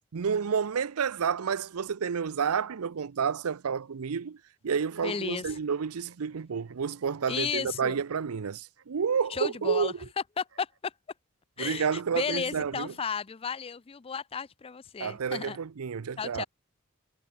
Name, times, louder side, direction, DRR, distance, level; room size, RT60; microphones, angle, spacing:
voice 1, 0.1-4.4 4.6-9.9 11.6-12.9 15.0-16.5, right 6 dB, 90° right, 0.6 m, -30 dB
sound 1, 4.6-10.8 11.8-12.9, right 4 dB, 65° right, 1.6 m, -57 dB
voice 2, 5.0-5.5 7.3-8.0 9.3-9.9 10.4-10.9 11.6-15.6 16.2-16.4, left 6 dB, 25° left, 0.4 m, -34 dB
head